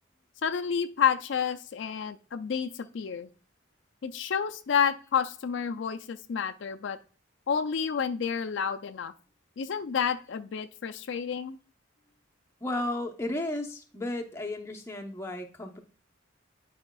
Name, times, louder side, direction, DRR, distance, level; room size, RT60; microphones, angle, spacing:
voice 1, 0.4-3.3 4.0-7.0 7.5-9.1 9.6-11.6, left 7 dB, 65° left, 7 dB, 0.4 m, -30 dB
voice 2, 12.6-15.8, left 1 dB, 15° left, 2 dB, 0.8 m, -34 dB
10.5 x 5.0 x 2.3 m, 0.39 s
head